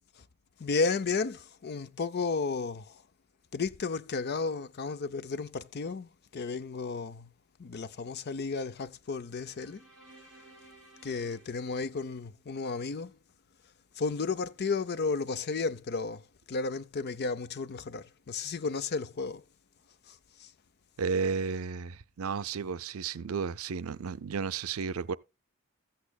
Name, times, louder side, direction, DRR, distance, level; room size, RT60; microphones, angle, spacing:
voice 1, 0.6-3.0 3.5-7.3 7.6-9.8 11.0-13.2 14.0-19.4 20.1-20.5, left 4 dB, 50° left, 0.5 m, -33 dB
sound 1, 9.2-12.6, right 2 dB, ahead, 6.3 m, -57 dB
voice 2, 21.0-25.1, right 5 dB, 75° right, 0.5 m, -33 dB
15.0 x 8.4 x 2.3 m
head